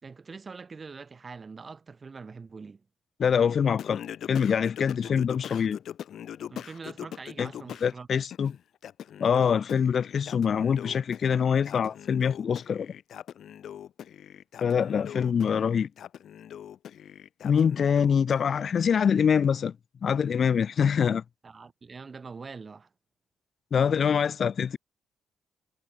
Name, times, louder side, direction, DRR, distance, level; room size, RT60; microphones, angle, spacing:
voice 1, 0.0-2.8 4.9-5.2 6.5-8.1 21.4-22.9, right 4 dB, 35° right, 1.7 m, -44 dB
voice 2, 3.2-4.0 4.3-5.8 7.4-7.5 7.8-8.6 9.2-12.9 14.6-15.9 17.4-19.8 20.0-21.2 23.7-24.8, left 7 dB, 50° left, 0.4 m, -24 dB
Singing, 3.8-7.9 8.3-18.7, left 10 dB, 65° left, 3.7 m, -42 dB
cardioid pair, 90°, 0 cm